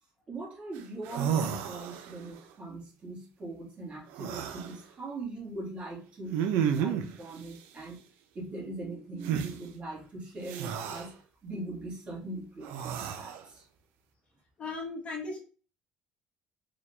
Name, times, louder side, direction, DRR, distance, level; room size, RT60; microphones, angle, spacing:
voice 1, 0.3-8.0 8.3-11.1 11.4-13.7, right 2 dB, 35° right, -4 dB, 2.1 m, -41 dB
sound 1, 0.8-0.9 1.0-2.3 4.1-4.7 6.3-7.2 9.2-9.5 10.5-11.1 12.6-13.4, right 8 dB, 85° right, 0.5 m, -31 dB
voice 2, 14.6-15.4, left 3 dB, 35° left, -1 dB, 1.3 m, -36 dB
3.9 x 2.8 x 3.3 m, 0.37 s
cardioid pair, 110°, 3 cm